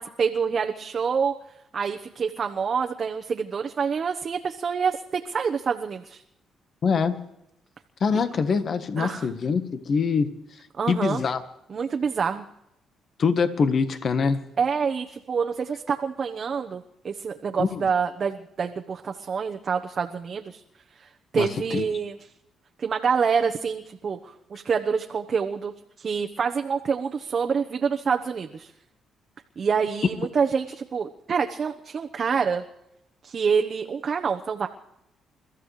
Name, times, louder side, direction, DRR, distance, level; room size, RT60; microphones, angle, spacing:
voice 1, 0.0-1.3 1.7-6.2 9.0-9.3 10.8-11.2 11.7-12.4 14.6-20.6 21.0-22.2 22.8-25.7 26.0-28.7 29.6-32.6 33.2-34.7, right 6 dB, 45° right, 4 dB, 1.1 m, -27 dB
voice 2, 6.8-7.2 8.0-10.3 10.9-11.4 13.2-14.4 17.6-17.9 21.4-21.9, left 5 dB, 50° left, 10 dB, 1.3 m, -24 dB
30.0 x 14.5 x 3.3 m, 0.81 s
cardioid pair, 90°, 0 cm